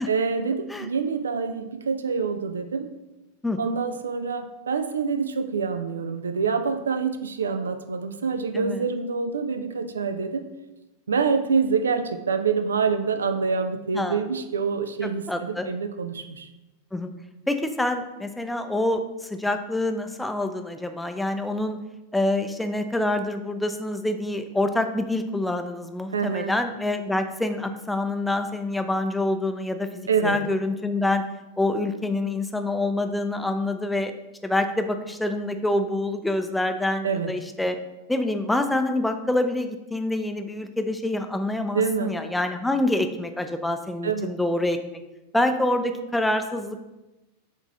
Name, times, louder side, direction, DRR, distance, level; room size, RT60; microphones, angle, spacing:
voice 1, 0.1-2.9 3.6-10.5 11.1-16.5 26.1-26.5 30.1-30.4 37.0-37.3 41.7-42.1 44.0-44.3, right 5 dB, 70° right, 9 dB, 0.5 m, -26 dB
voice 2, 8.5-8.8 13.9-14.2 15.0-15.7 16.9-17.1 17.5-21.8 22.1-31.2 31.6-34.1 34.4-37.8 38.1-44.8 45.3-46.9, left 1 dB, 5° left, 7 dB, 0.5 m, -26 dB
7.2 x 3.5 x 4.0 m, 1.0 s
figure-of-eight pair, 90°, 0 cm